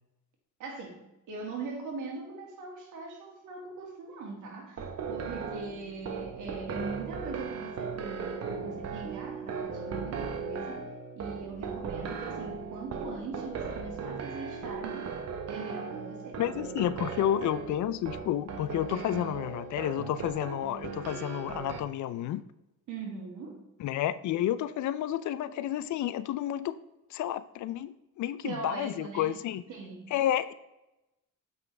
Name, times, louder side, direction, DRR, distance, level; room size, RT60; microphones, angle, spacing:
voice 1, 0.6-15.2 15.5-16.4 22.9-23.7 28.4-29.4 29.7-30.1, right 4 dB, 80° right, 1 dB, 2.3 m, -41 dB
sound 1, 4.8-21.8, right 5 dB, 55° right, 1.3 m, -37 dB
voice 2, 16.4-22.4 23.8-26.7 27.1-29.6 30.1-30.5, left 11 dB, 75° left, 15 dB, 0.6 m, -31 dB
7.8 x 5.7 x 3.4 m, 0.96 s
cardioid pair, 90°, 30 cm